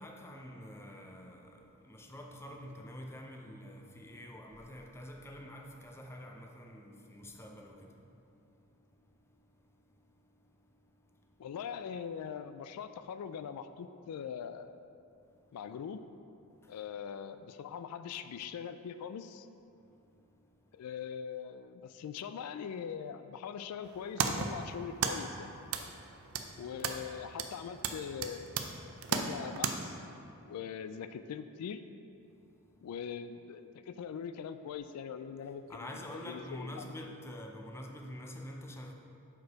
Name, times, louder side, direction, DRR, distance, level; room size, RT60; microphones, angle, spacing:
voice 1, 0.0-11.4 15.3-15.5 16.5-16.8 19.7-20.6 25.9-26.6 32.3-32.9 35.7-38.9, left 1 dB, 10° left, 0.5 m, -48 dB
voice 2, 11.4-14.7 15.5-16.1 16.7-19.5 20.7-25.5 26.6-28.6 29.1-30.0 30.4-31.8 32.8-36.9, left 7 dB, 90° left, 0.3 m, -42 dB
sound 1, 23.8-29.7, right 6 dB, 65° right, 0.5 m, -36 dB
6.2 x 5.1 x 4.7 m
head